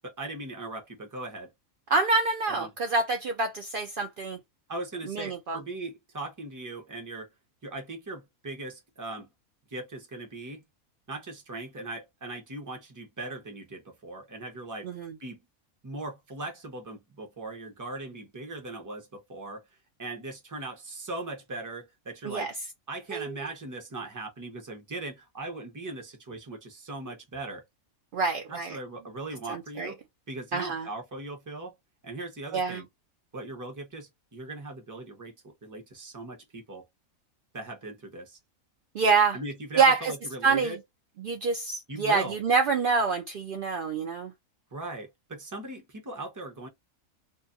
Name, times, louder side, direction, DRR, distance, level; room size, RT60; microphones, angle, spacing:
voice 1, 0.0-1.5 2.5-2.7 4.7-7.3 7.6-9.3 9.7-10.6 11.1-14.9 15.2-15.4 15.8-19.6 20.0-22.5 22.9-27.6 28.5-30.0 30.3-31.7 32.0-32.8 33.3-36.8 37.5-38.4 39.3-40.8 41.9-42.4 44.7-46.7, right 2 dB, 20° right, 0.6 m, -39 dB
voice 2, 1.9-4.4 5.1-5.6 14.8-15.1 22.2-22.5 23.1-23.3 28.1-28.8 29.5-29.9 30.5-30.9 32.5-32.8 38.9-39.4 39.8-40.1 40.4-40.7 41.2-44.3, right 4 dB, 75° right, 0.5 m, -26 dB
2.5 x 2.3 x 2.4 m
omnidirectional pair, 1.4 m